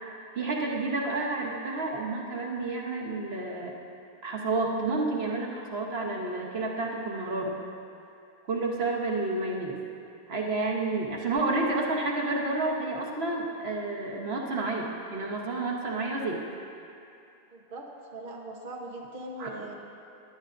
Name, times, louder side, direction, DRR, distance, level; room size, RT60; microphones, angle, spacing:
voice 1, 0.3-3.7 4.2-7.5 8.5-9.8 10.3-16.4 19.4-19.5, right 2 dB, 45° right, -1 dB, 0.8 m, -30 dB
voice 2, 17.5-19.7, right 1 dB, 75° right, -1 dB, 0.4 m, -41 dB
18.0 x 11.0 x 2.6 m, 2.6 s
omnidirectional pair, 2.4 m